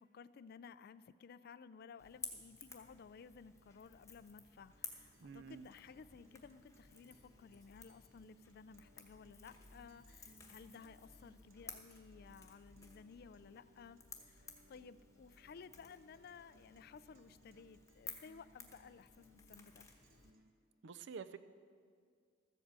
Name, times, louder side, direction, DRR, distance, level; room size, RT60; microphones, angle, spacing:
voice 1, 0.0-19.9, left 5 dB, 50° left, 15 dB, 0.3 m, -57 dB
Crackle / Crack, 2.0-20.3, left 5 dB, 15° left, 1.1 m, -56 dB
Guitar, 4.5-20.5, right 1 dB, 80° right, 1.0 m, -69 dB
voice 2, 5.2-5.7 20.8-21.4, right 6 dB, 60° right, 13 dB, 0.5 m, -48 dB
13.5 x 8.0 x 7.4 m, 2.1 s
head